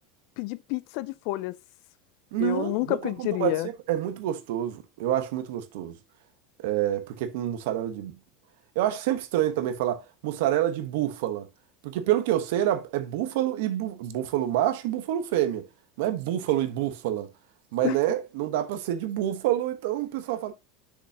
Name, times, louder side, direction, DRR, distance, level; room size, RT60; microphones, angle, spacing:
voice 1, 0.4-1.5 2.4-3.7 17.8-18.0, left 19 dB, 50° left, 0.4 m, -29 dB
voice 2, 2.3-6.0 6.6-8.2 8.7-11.5 11.8-15.7 16.0-17.3 17.7-20.5, right 12 dB, 65° right, 1.1 m, -27 dB
6.8 x 5.2 x 2.8 m
supercardioid pair, 175°, 0 cm